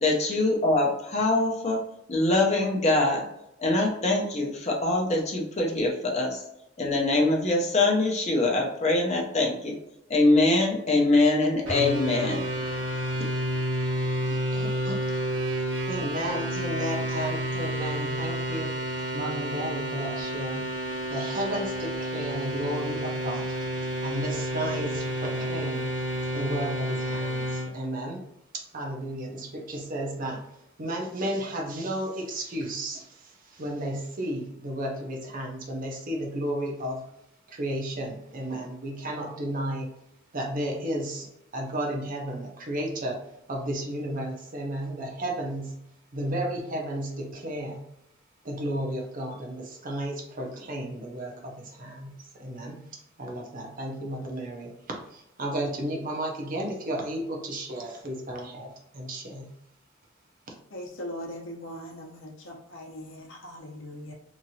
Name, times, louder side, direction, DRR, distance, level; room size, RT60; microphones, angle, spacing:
voice 1, 0.0-1.8 2.1-3.2 3.6-6.4 6.8-9.7 10.1-12.4, left 2 dB, 35° left, 0 dB, 0.7 m, -23 dB
sound 1, 11.7-27.7, right 1 dB, 65° right, 1.2 m, -30 dB
voice 2, 14.2-15.0 15.9-18.8 19.1-20.7 21.1-23.6 24.0-26.0 26.3-28.2 28.5-30.4 30.8-37.0 37.5-39.9 40.3-41.3 41.5-43.2 43.5-45.8 46.1-47.9 48.4-52.8 53.2-59.5, right 1 dB, 40° right, 0 dB, 0.6 m, -33 dB
voice 3, 60.7-64.1, left 1 dB, 70° left, 0 dB, 0.7 m, -40 dB
2.9 x 2.5 x 2.7 m, 0.83 s
head